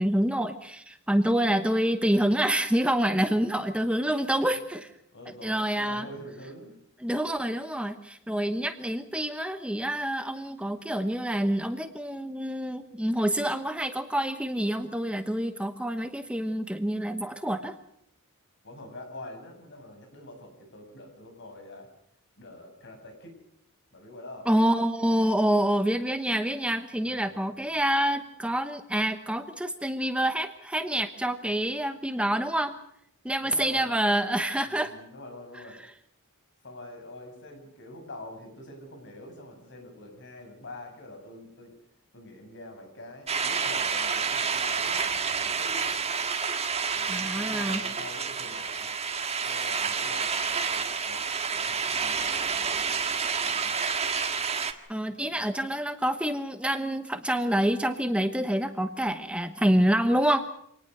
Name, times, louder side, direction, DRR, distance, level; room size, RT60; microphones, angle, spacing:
voice 1, 0.0-4.9 5.4-6.1 7.0-17.7 24.5-32.7 33.2-34.9 47.1-47.8 54.9-60.4, right 1 dB, 5° right, 8 dB, 1.0 m, -27 dB
voice 2, 5.1-6.8 18.6-21.9 22.4-23.4 23.9-24.5 27.0-27.4 33.4-34.0 34.6-35.8 36.6-41.7 42.1-46.0 46.9-48.9 49.4-52.8 53.4-53.8 55.1-55.3, left 1 dB, 55° left, 4 dB, 6.6 m, -45 dB
sound 1, 43.3-54.7, right 5 dB, 30° right, 1.7 m, -29 dB
26.0 x 19.0 x 6.7 m, 0.71 s
head